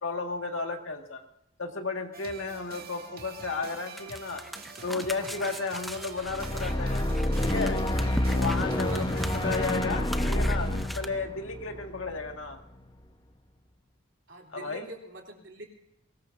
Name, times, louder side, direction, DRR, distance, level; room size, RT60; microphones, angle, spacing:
voice 1, 0.0-1.2 1.6-4.4 4.8-7.1 7.4-7.8 8.3-12.6 14.5-14.8, left 4 dB, 75° left, 4 dB, 1.8 m, -33 dB
sound 1, 2.1-9.7, right 4 dB, 45° right, 2.1 m, -45 dB
sound 2, 4.0-11.0, equal, ahead, 0.5 m, -41 dB
sound 3, 6.2-12.6, left 1 dB, 25° left, 1.0 m, -28 dB
voice 2, 8.8-9.2 14.3-15.6, right 1 dB, 60° right, 1 dB, 3.2 m, -45 dB
23.0 x 19.5 x 2.7 m, 0.83 s
head